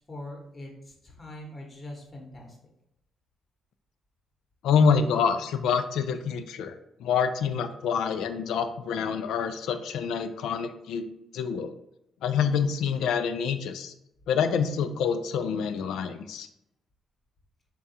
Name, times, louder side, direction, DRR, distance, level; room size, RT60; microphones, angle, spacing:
voice 1, 0.0-2.6, left 1 dB, 30° left, 0 dB, 0.9 m, -42 dB
voice 2, 4.6-6.7 7.0-11.1 11.3-11.7 12.2-13.9 14.3-16.5, left 6 dB, 80° left, 9 dB, 0.3 m, -26 dB
3.6 x 2.3 x 4.1 m, 0.80 s
cardioid pair, 90°, 0 cm